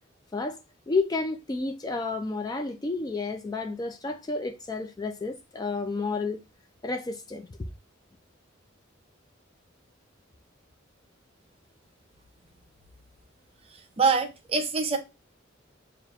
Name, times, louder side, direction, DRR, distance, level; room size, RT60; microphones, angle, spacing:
voice 1, 0.9-6.4 6.8-7.5, left 3 dB, 20° left, 0.3 m, -31 dB
voice 2, 13.7-15.0, right 5 dB, 30° right, 0.5 m, -25 dB
6.5 x 2.4 x 2.3 m
head